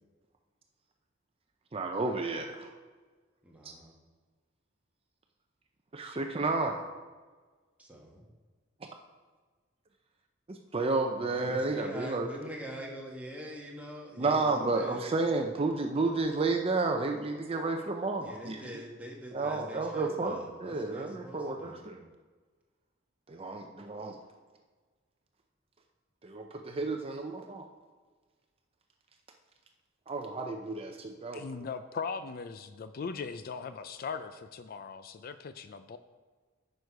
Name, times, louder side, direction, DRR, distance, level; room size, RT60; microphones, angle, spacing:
voice 1, 1.7-2.7 5.9-6.8 10.7-12.3 14.2-18.6 19.3-22.0 23.3-24.2 26.2-27.7 30.1-31.4, right 3 dB, 30° right, 4 dB, 0.6 m, -31 dB
voice 2, 3.4-3.9 7.8-8.2 11.1-15.0 18.2-21.9, equal, 10° right, -2 dB, 1.5 m, -44 dB
voice 3, 31.3-36.0, left 5 dB, 50° left, 11 dB, 0.4 m, -39 dB
9.9 x 6.4 x 4.7 m, 1.4 s
head